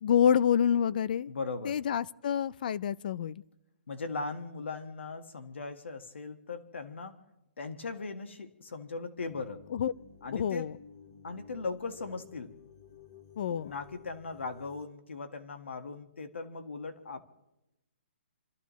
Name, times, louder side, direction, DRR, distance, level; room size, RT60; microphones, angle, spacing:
voice 1, 0.0-1.3 1.6-3.4 9.7-9.9 10.3-10.7 13.4-13.7, left 8 dB, 45° left, 0.5 m, -27 dB
voice 2, 1.3-1.8 3.9-7.2 7.6-9.6 10.2-10.7 11.2-12.5 13.6-17.2, left 4 dB, 90° left, 1.6 m, -39 dB
sound 1, 9.2-14.9, left 6 dB, 30° left, 1.7 m, -54 dB
28.5 x 14.0 x 3.1 m
hypercardioid pair, 165°, 6 cm